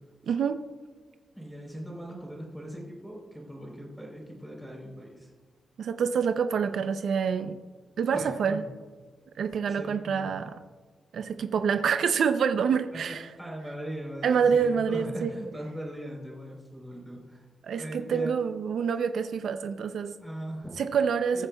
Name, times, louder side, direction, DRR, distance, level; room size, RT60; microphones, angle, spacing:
voice 1, 0.3-0.6 5.8-7.6 8.0-8.6 9.4-10.5 11.1-13.2 14.2-15.3 17.6-20.1 20.8-21.5, right 6 dB, 70° right, 8 dB, 0.5 m, -27 dB
voice 2, 1.4-5.3 8.1-8.7 9.7-10.3 12.9-17.5 17.8-18.3 20.2-20.8 21.3-21.5, right 1 dB, 5° right, -3 dB, 3.6 m, -40 dB
21.0 x 9.8 x 2.3 m, 1.4 s
wide cardioid pair, 155°, 0 cm